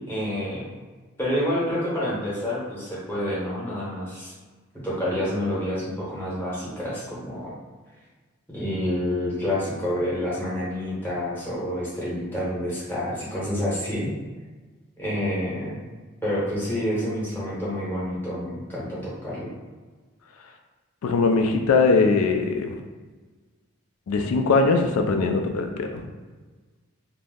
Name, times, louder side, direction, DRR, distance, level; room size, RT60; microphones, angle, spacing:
voice 1, 0.1-0.7 1.2-4.3 4.8-7.5 8.5-14.1 15.0-15.8 16.2-19.5, left 1 dB, 10° left, -8 dB, 0.8 m, -28 dB
voice 2, 21.0-22.8 24.1-26.1, left 4 dB, 90° left, 4 dB, 0.3 m, -21 dB
2.6 x 2.0 x 3.5 m, 1.4 s
head